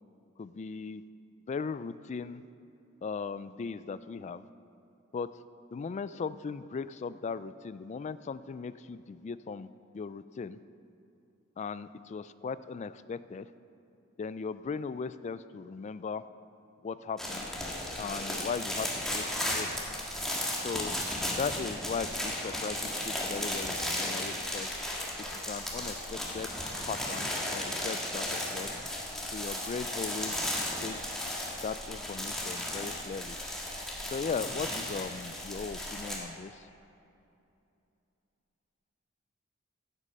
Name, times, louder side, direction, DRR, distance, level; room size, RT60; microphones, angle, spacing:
voice 1, 0.4-1.0 1.5-2.4 3.0-4.4 5.1-5.3 5.7-9.7 9.9-10.6 11.6-13.5 14.2-16.2 16.8-17.5 18.0-19.7 20.6-20.9 21.4-24.7 25.3-26.5 26.9-28.7 29.3-30.4 30.8-31.1 31.6-33.4 34.1-36.7, left 5 dB, 35° left, 15 dB, 0.3 m, -38 dB
sound 1, 17.2-36.2, left 1 dB, ahead, 1.7 m, -35 dB
14.0 x 8.2 x 5.4 m, 2.7 s
head